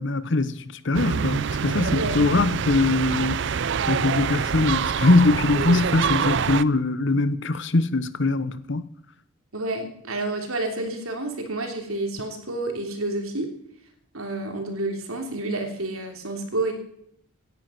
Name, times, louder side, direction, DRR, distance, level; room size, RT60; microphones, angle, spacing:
voice 1, 0.0-3.4 3.9-8.9, left 2 dB, 55° left, 0.9 m, -22 dB
sound 1, 0.9-6.6, right 6 dB, 55° right, 0.5 m, -25 dB
voice 2, 9.5-13.5 14.1-16.7, right 2 dB, 80° right, 3.3 m, -29 dB
17.0 x 10.5 x 5.8 m
head